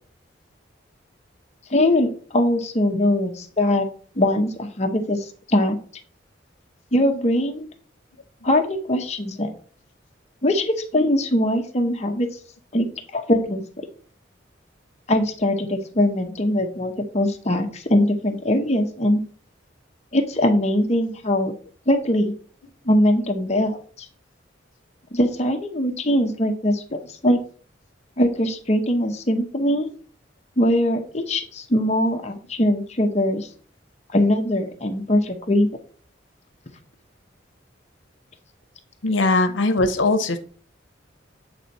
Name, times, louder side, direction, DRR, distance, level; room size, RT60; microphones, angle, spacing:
voice 1, 1.7-3.9 4.2-5.8 6.9-7.7 8.4-9.5 10.4-12.3 12.7-12.9 13.1-13.6 15.1-19.2 20.1-21.5 21.9-22.3 22.9-23.8 25.1-27.4 28.2-29.9 30.6-33.5 34.1-35.7, left 1 dB, 35° left, 4 dB, 0.8 m, -21 dB
voice 2, 39.0-40.4, left 2 dB, 85° left, 9 dB, 0.7 m, -20 dB
8.1 x 3.4 x 4.1 m, 0.44 s
head